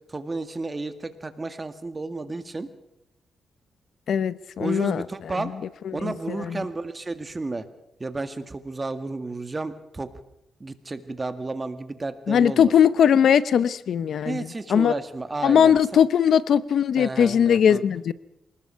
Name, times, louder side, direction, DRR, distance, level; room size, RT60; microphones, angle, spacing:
voice 1, 0.1-2.7 4.6-5.5 5.9-7.7 8.0-10.1 10.6-12.7 14.2-16.0 17.0-17.8, right 3 dB, 25° right, 9 dB, 1.9 m, -32 dB
voice 2, 4.1-5.0 5.4-5.5 5.8-6.6 12.3-14.9 15.4-18.1, left 8 dB, 70° left, 17 dB, 0.7 m, -20 dB
25.0 x 19.5 x 5.7 m, 0.84 s
cardioid pair, 90°, 0 cm